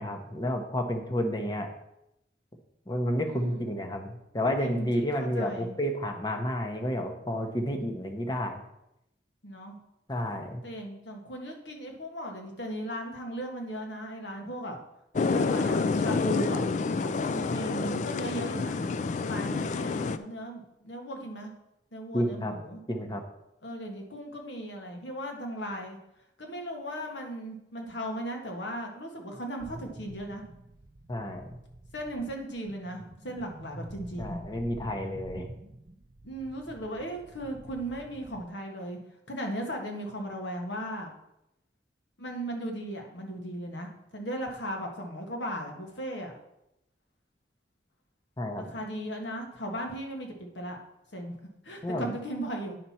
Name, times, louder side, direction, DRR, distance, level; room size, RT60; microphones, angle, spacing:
voice 1, 0.0-1.7 2.9-8.6 10.1-10.6 22.1-22.6 22.9-23.2 31.1-31.5 34.2-35.5 48.4-48.7 51.8-52.1, equal, 25° left, 5 dB, 0.9 m, -30 dB
voice 2, 3.3-3.8 4.6-5.8 9.4-9.7 10.6-14.8 15.2-16.6 17.0-18.8 19.2-21.5 21.9-22.8 23.6-26.0 26.4-30.4 31.9-34.4 36.2-39.0 39.3-41.1 42.2-46.3 48.6-50.8 51.1-51.4 51.6-52.8, equal, 80° left, 2 dB, 1.5 m, -37 dB
sound 1, 15.2-20.2, left 4 dB, 40° left, 0.3 m, -28 dB
sound 2, 29.6-38.5, right 1 dB, 40° right, 0.5 m, -47 dB
9.2 x 5.9 x 4.3 m, 0.85 s
head